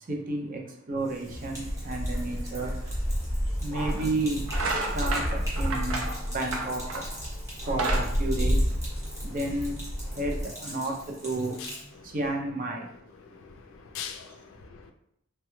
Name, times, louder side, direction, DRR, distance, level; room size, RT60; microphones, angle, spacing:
voice 1, 0.1-0.6 0.9-2.7 3.6-4.4 4.9-6.0 6.3-7.0 7.7-8.6 9.2-9.8 10.2-10.3 10.6-10.9 11.2-11.5 12.1-12.8, right 2 dB, 40° right, 0.4 m, -31 dB
Sink (filling or washing), 0.9-11.9, equal, 15° right, 0.8 m, -43 dB
sound 1, 1.3-10.4, equal, 15° left, 0.9 m, -31 dB
sound 2, 3.1-3.2 3.9-4.1 4.4-7.2 7.5-9.2, right 3 dB, 90° right, 0.5 m, -32 dB
voice 2, 9.0-9.4 11.6-11.7 12.0-12.1 13.2-14.9, left 7 dB, 75° left, 0.4 m, -43 dB
3.2 x 2.2 x 3.0 m
head